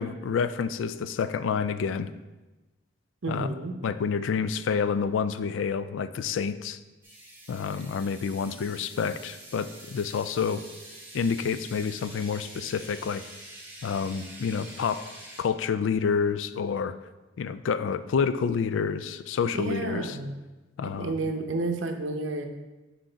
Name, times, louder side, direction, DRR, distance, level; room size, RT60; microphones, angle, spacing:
voice 1, 0.0-2.1 3.3-3.5 3.8-6.8 7.5-10.6 11.1-13.2 13.8-15.1 15.4-16.9 17.4-20.2 20.8-21.1, left 6 dB, 90° left, 13 dB, 0.3 m, -28 dB
voice 2, 3.2-3.8 19.5-20.4 21.0-22.5, right 2 dB, 90° right, 5 dB, 0.7 m, -30 dB
sound 1, 7.0-15.4, right 1 dB, 10° right, 1.8 m, -46 dB
6.1 x 4.6 x 3.9 m, 1.1 s
head